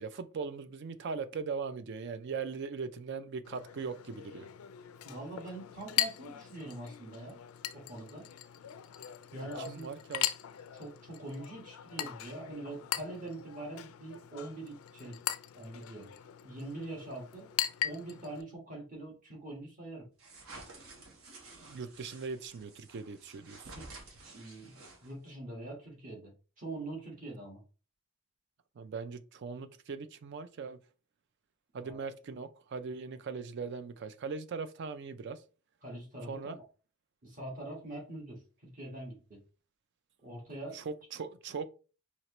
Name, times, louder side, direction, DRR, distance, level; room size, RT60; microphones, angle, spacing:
voice 1, 0.0-4.5 9.3-10.3 21.6-23.7 28.8-30.8 31.7-35.4 36.3-36.6 40.7-41.7, right 5 dB, 55° right, 0.4 m, -40 dB
Chink clink, 3.4-18.4, left 12 dB, 80° left, 0.4 m, -40 dB
voice 2, 5.0-7.4 7.7-8.2 9.3-9.9 10.7-15.2 15.5-16.1 16.4-17.5 17.8-20.1 23.7-23.9 24.3-27.6 31.8-32.0 35.8-36.6 37.2-39.4 40.2-40.8, right 2 dB, 35° right, 1.5 m, -43 dB
sound 1, 20.2-25.3, right 2 dB, 70° right, 1.1 m, -52 dB
4.5 x 2.8 x 3.0 m
head